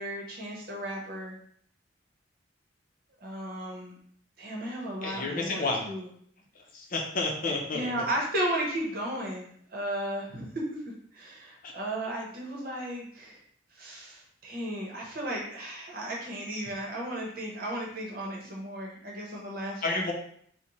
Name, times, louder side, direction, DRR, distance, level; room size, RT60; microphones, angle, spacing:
voice 1, 0.0-1.4 3.2-4.0 4.4-6.1 7.5-13.4 13.7-20.0, right 1 dB, 50° right, -2 dB, 0.9 m, -35 dB
voice 2, 5.0-5.9 6.6-7.9 11.6-11.7 19.8-20.1, left 3 dB, 45° left, 1 dB, 0.6 m, -30 dB
4.1 x 2.2 x 3.0 m, 0.63 s
head